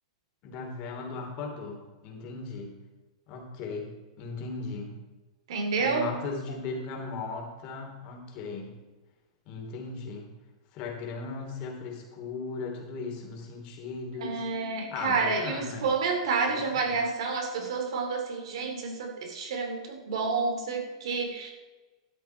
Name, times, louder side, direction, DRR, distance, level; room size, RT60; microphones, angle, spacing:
voice 1, 0.4-2.7 3.3-3.9 4.2-5.0 5.8-8.7 9.5-10.3 10.7-14.4 14.9-15.9 16.5-17.0, left 4 dB, 40° left, 1 dB, 2.9 m, -37 dB
voice 2, 5.5-6.1 14.2-21.5, right 4 dB, 70° right, 3 dB, 2.8 m, -29 dB
12.5 x 8.2 x 4.5 m, 1.2 s
supercardioid pair, 145°, 3 cm